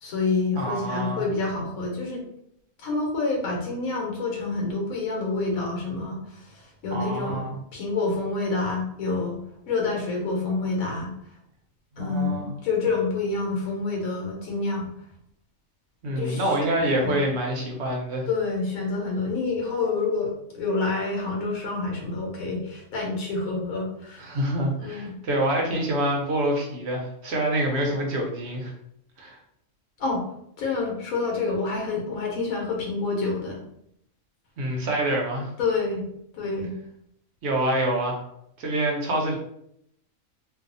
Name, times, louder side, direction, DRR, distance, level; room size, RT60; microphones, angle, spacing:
voice 1, 0.0-2.2 2.8-6.6 6.8-9.4 9.7-11.1 12.0-14.9 16.2-17.1 18.3-24.2 24.8-25.1 30.0-30.2 30.6-33.6 35.6-36.0 36.3-36.7, left 3 dB, 90° left, -1 dB, 1.2 m, -28 dB
voice 2, 0.5-1.2 6.9-7.6 12.0-12.5 16.0-18.3 24.2-28.7 29.2-29.4 34.6-35.5 37.4-38.2 38.6-39.4, right 1 dB, 60° right, 0 dB, 0.8 m, -26 dB
2.6 x 2.3 x 2.5 m, 0.73 s
omnidirectional pair, 1.4 m